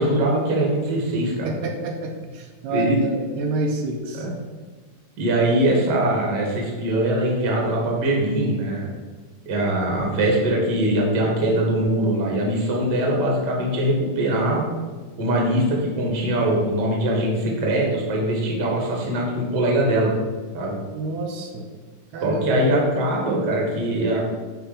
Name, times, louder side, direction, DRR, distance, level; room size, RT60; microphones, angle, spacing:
voice 1, 0.0-1.5 2.7-3.0 4.1-4.3 5.2-8.9 9.4-14.6 15.2-20.1 20.5-20.8 22.2-24.2, right 1 dB, 40° right, -1 dB, 1.7 m, -22 dB
voice 2, 1.4-4.3 20.9-21.7 22.1-22.6, right 2 dB, 80° right, 2 dB, 2.4 m, -28 dB
9.3 x 3.5 x 5.1 m, 1.4 s
omnidirectional pair, 3.8 m